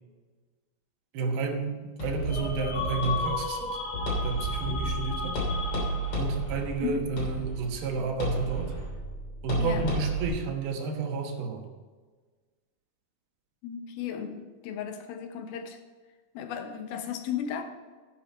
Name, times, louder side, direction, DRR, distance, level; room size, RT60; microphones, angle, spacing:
voice 1, 1.1-3.8 4.2-5.4 6.2-8.7 9.4-11.7, right 4 dB, 85° right, 2 dB, 3.2 m, -31 dB
sound 1, 2.0-10.3, right 1 dB, 50° left, 4.2 m, -32 dB
sound 2, 2.3-6.4, left 3 dB, 20° left, 1.8 m, -35 dB
voice 2, 9.6-9.9 13.6-15.8 16.3-17.6, left 8 dB, 90° left, 6 dB, 2.9 m, -35 dB
11.0 x 8.9 x 4.3 m, 1.4 s
omnidirectional pair, 4.2 m